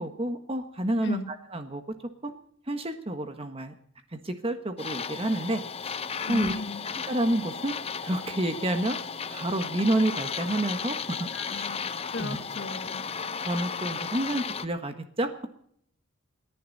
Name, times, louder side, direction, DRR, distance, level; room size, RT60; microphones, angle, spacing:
voice 1, 0.0-1.8 2.2-2.3 2.7-3.7 4.1-5.9 6.3-6.5 7.1-7.7 8.0-9.0 9.3-11.7 12.2-12.4 13.4-15.5, right 1 dB, 30° right, 7 dB, 1.4 m, -29 dB
sound 1, 4.8-14.7, left 6 dB, 30° left, 0.7 m, -35 dB
voice 2, 6.2-6.8 11.3-13.0, left 2 dB, 60° left, 8 dB, 1.6 m, -35 dB
28.5 x 11.0 x 4.1 m, 0.66 s
head